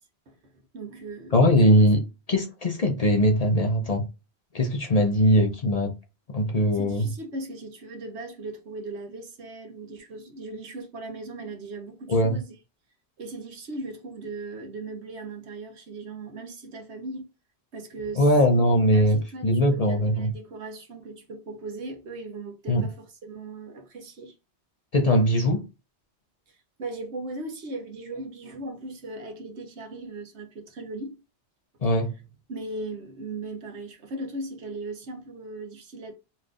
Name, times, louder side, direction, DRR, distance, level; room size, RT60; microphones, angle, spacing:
voice 1, 0.3-1.4 6.7-12.5 13.2-17.3 17.7-18.3 18.9-24.3 26.5-31.2 32.5-36.1, right 2 dB, 80° right, 1.2 m, -38 dB
voice 2, 1.3-2.0 2.3-4.0 4.5-5.9 6.3-7.1 12.1-12.4 18.2-20.3 22.7-22.9 24.9-25.7 31.8-32.1, equal, 40° left, 0.7 m, -21 dB
4.1 x 3.2 x 2.4 m
omnidirectional pair, 1.1 m